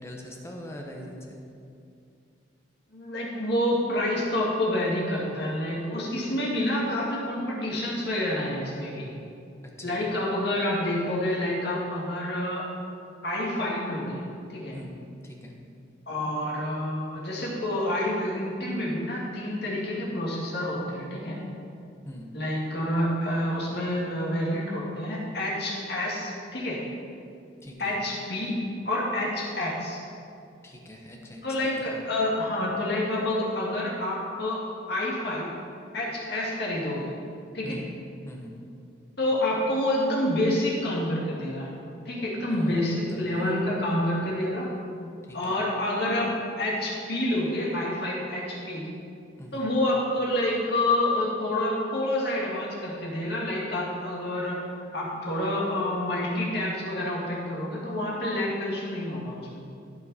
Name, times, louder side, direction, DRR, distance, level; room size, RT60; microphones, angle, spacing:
voice 1, 0.0-1.4 9.8-10.0 14.7-15.6 22.0-22.4 27.6-28.0 30.6-31.4 31.8-31.9 37.6-37.9 38.2-38.6 42.5-43.6 45.2-45.6 49.4-49.7, left 1 dB, 15° left, 0 dB, 0.9 m, -42 dB
voice 2, 2.9-9.1 9.8-12.7 13.2-14.3 14.5-14.7 16.1-21.4 22.3-26.8 27.8-28.6 28.8-30.0 31.4-34.6 34.9-35.5 35.9-37.1 37.5-37.8 39.2-41.7 42.1-44.7 45.3-48.9 49.5-54.6 54.9-59.6, left 1 dB, 55° left, -4 dB, 2.1 m, -28 dB
15.5 x 5.4 x 4.2 m, 2.5 s
head